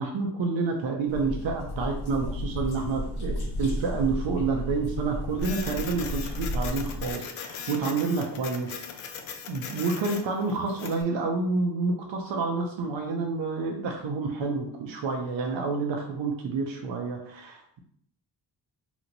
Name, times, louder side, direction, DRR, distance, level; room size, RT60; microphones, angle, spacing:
voice 1, 0.0-9.0 9.5-17.8, right 4 dB, 70° right, 2 dB, 0.6 m, -29 dB
sound 1, 1.1-7.1, equal, 50° left, 0.8 m, -33 dB
Printer, 5.4-11.0, left 7 dB, 80° left, 0.6 m, -39 dB
3.0 x 2.1 x 3.8 m, 0.66 s
cardioid pair, 60°, 48 cm